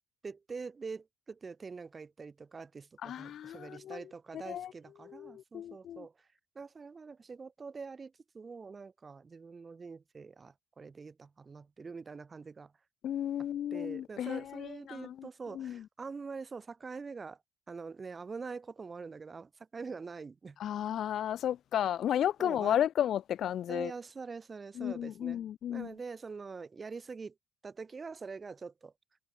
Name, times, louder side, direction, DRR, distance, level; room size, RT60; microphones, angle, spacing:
voice 1, 0.2-6.3 6.5-12.7 13.7-17.4 17.7-20.6 22.4-22.8 23.7-25.4 25.7-27.3 27.6-28.9, right 4 dB, 25° right, 2.7 m, -44 dB
voice 2, 3.0-4.0 4.3-4.7 5.0-6.1 13.0-15.3 15.5-15.8 20.6-23.9 24.8-25.9, left 10 dB, 50° left, 0.4 m, -33 dB
cardioid pair, 130°, 0 cm